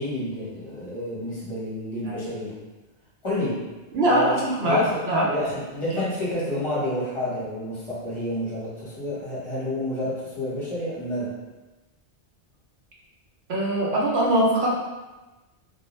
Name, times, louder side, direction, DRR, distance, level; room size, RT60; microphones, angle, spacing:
voice 1, 0.0-2.6 3.2-3.7 4.1-5.0 5.3-11.4, left 1 dB, 30° left, -9 dB, 0.9 m, -29 dB
voice 2, 3.9-5.3 5.9-6.0 13.5-14.7, right 1 dB, 65° right, -4 dB, 0.8 m, -22 dB
2.3 x 2.1 x 3.0 m, 1.1 s
omnidirectional pair, 1.2 m